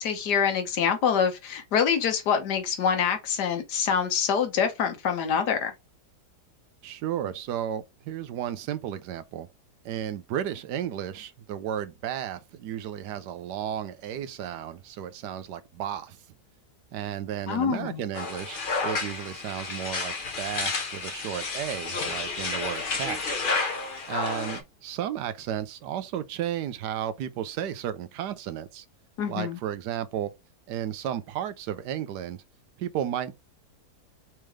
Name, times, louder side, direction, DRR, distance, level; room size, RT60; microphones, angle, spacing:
voice 1, 0.0-5.7 17.5-18.0 29.2-29.6, left 7 dB, 75° left, 1.5 m, -25 dB
voice 2, 6.8-9.5 9.8-16.2 16.9-23.2 24.1-28.8 29.3-30.3 30.7-32.4 32.8-33.3, right 10 dB, 85° right, 1.3 m, -33 dB
sound 1, 18.1-24.6, left 4 dB, 45° left, 0.8 m, -31 dB
4.4 x 3.3 x 3.5 m
omnidirectional pair, 1.8 m